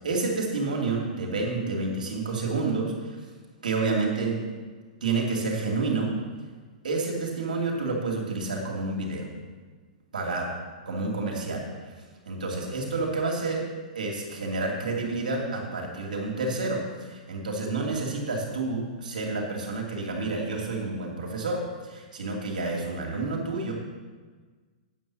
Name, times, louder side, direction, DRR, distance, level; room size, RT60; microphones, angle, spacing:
voice 1, 0.0-2.9 3.6-4.5 5.0-6.2 6.8-9.3 10.1-10.4 10.9-11.9 12.3-13.6 13.9-16.8 17.1-23.7, right 3 dB, 85° right, -1 dB, 2.3 m, -29 dB
9.2 x 7.1 x 6.1 m, 1.4 s
hypercardioid pair, 135°, 4 cm